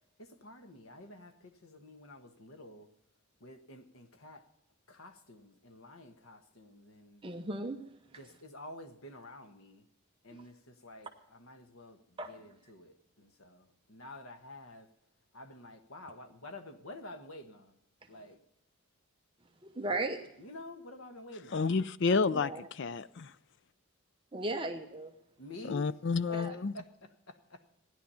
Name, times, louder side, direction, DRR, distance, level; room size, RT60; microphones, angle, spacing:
voice 1, 0.2-2.9 3.4-4.5 4.9-7.2 8.1-9.9 10.2-14.9 15.3-17.8 18.1-18.4 19.9-20.0 20.4-21.7 25.4-25.9 26.3-27.7, left 2 dB, 85° left, 7 dB, 1.4 m, -50 dB
voice 2, 7.2-7.8 12.2-12.3 19.6-20.2 22.3-22.6 24.3-25.1 26.3-26.5, right 2 dB, 25° right, 4 dB, 0.9 m, -36 dB
voice 3, 21.5-23.3 25.7-26.7, left 4 dB, 55° left, 17 dB, 0.5 m, -30 dB
16.5 x 10.5 x 5.6 m, 0.83 s
head